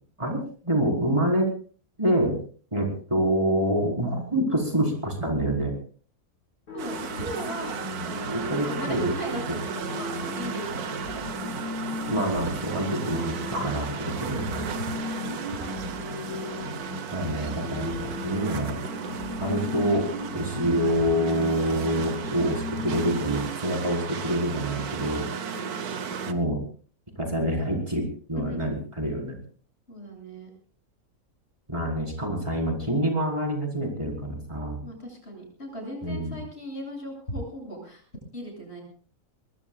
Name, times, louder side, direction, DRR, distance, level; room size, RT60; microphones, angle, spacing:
voice 1, 0.2-1.5 2.0-2.4 2.7-5.7 8.3-9.1 12.1-14.6 17.1-18.8 19.4-25.3 26.3-26.6 27.1-29.4 31.7-34.8 36.0-36.4, right 1 dB, 20° right, -1 dB, 4.7 m, -26 dB
sound 1, 6.7-23.4, left 2 dB, 85° left, 5.9 m, -36 dB
voice 2, 6.7-11.2 14.2-15.4 25.3-25.9 28.3-28.7 29.9-30.5 34.8-38.0 38.3-38.8, right 1 dB, 45° left, 1 dB, 8.1 m, -37 dB
sound 2, 6.8-26.3, right 7 dB, 90° right, 1.6 m, -36 dB
sound 3, 7.8-19.7, equal, 65° left, 6.1 m, -47 dB
24.0 x 22.0 x 2.4 m, 0.43 s
omnidirectional pair, 1.6 m